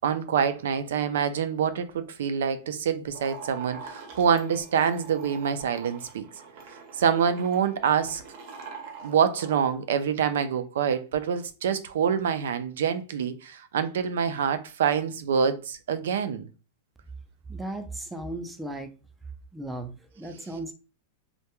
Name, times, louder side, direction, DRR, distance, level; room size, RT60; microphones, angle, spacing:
voice 1, 0.0-6.2 7.0-8.2 9.0-16.5, right 7 dB, 80° right, 0.3 m, -26 dB
sound 1, 3.1-9.6, right 5 dB, 55° right, 0.7 m, -44 dB
voice 2, 17.5-18.9 19.5-20.7, right 1 dB, 5° right, 0.4 m, -36 dB
2.2 x 2.2 x 2.9 m
supercardioid pair, 140°, 0 cm